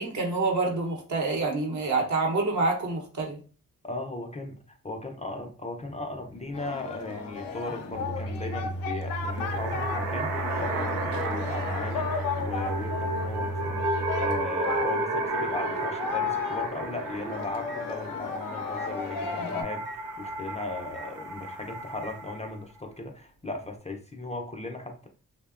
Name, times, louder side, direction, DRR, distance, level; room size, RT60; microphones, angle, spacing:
voice 1, 0.0-3.4 19.4-19.5, right 3 dB, 55° right, 1 dB, 0.9 m, -27 dB
voice 2, 3.8-19.8 20.2-25.1, left 2 dB, 20° left, 3 dB, 0.5 m, -37 dB
Microwave oven, 5.8-18.3 18.8-18.9 19.8-20.0 20.9-21.1 22.0-22.2, right 1 dB, 30° right, 0.5 m, -37 dB
Singing, 6.5-19.6, left 6 dB, 75° left, 0.5 m, -35 dB
sound 1, 9.1-22.5, right 2 dB, 85° right, 0.7 m, -33 dB
2.7 x 2.1 x 2.4 m, 0.38 s
cardioid pair, 55°, 35 cm